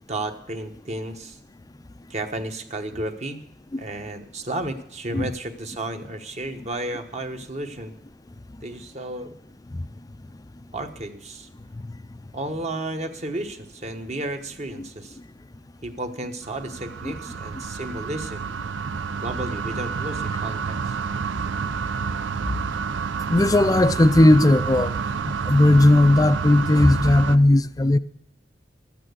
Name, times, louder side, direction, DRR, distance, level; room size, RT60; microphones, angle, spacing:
voice 1, 0.1-1.4 2.1-3.4 3.8-7.9 8.6-9.3 10.7-11.5 12.3-15.2 15.8-18.4 19.2-21.0, right 1 dB, 40° right, 1.2 m, -32 dB
sound 1, 16.4-27.4, right 5 dB, 80° right, 0.5 m, -29 dB
voice 2, 23.3-25.0 25.5-28.0, left 1 dB, 20° left, 0.4 m, -16 dB
12.5 x 8.8 x 8.0 m
head